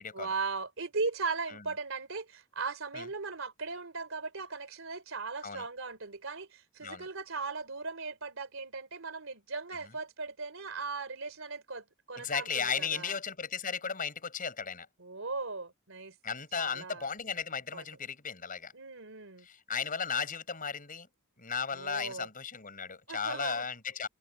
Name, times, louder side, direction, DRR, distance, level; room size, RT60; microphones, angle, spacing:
voice 1, 0.1-13.2 15.0-16.1 16.6-17.1 17.7-17.8 18.7-19.5 21.7-22.3 23.1-23.7, right 4 dB, 75° right, 3.3 m, -38 dB
voice 2, 12.1-14.9 16.2-18.7 19.4-21.1 21.4-24.1, left 6 dB, 40° left, 7.2 m, -35 dB
head